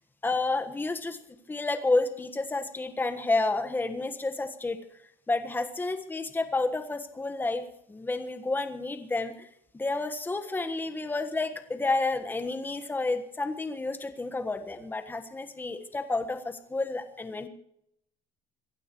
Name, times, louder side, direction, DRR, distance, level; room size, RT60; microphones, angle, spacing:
voice 1, 0.2-1.2 1.5-4.8 5.3-9.5 9.7-17.5, left 3 dB, 15° left, 8 dB, 1.5 m, -30 dB
26.0 x 15.5 x 3.2 m, 0.75 s
cardioid pair, 120°, 15 cm